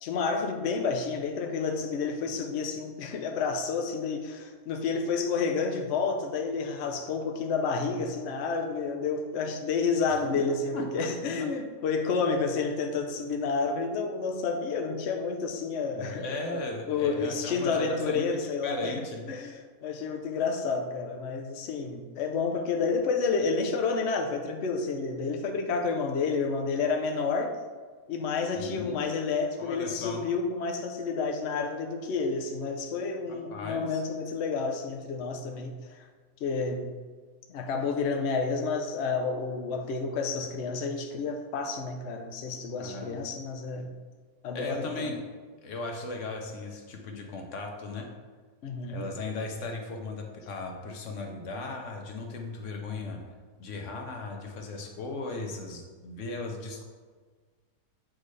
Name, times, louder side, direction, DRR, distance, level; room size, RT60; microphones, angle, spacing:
voice 1, 0.0-18.9 19.3-27.6 28.1-36.1 36.4-36.9 37.5-43.9 44.4-45.1 48.6-49.1, left 4 dB, 85° left, 3 dB, 0.6 m, -30 dB
voice 2, 10.3-11.3 15.9-18.2 18.6-19.3 28.5-29.0 29.6-30.2 33.3-34.0 42.8-43.1 44.5-45.2 45.6-48.1 48.9-53.3 53.6-56.8, left 2 dB, 55° left, 2 dB, 1.0 m, -37 dB
7.4 x 4.0 x 3.2 m, 1.5 s
omnidirectional pair, 1.8 m